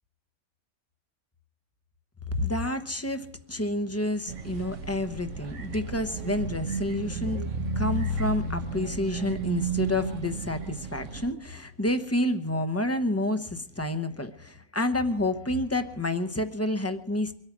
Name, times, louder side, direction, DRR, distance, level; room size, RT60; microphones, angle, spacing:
voice 1, 2.3-7.4 7.7-17.3, left 1 dB, 15° left, 9 dB, 0.9 m, -29 dB
sound 1, 4.3-11.3, right 3 dB, 90° right, 1.5 m, -33 dB
24.0 x 8.9 x 6.1 m, 0.67 s
omnidirectional pair, 1.2 m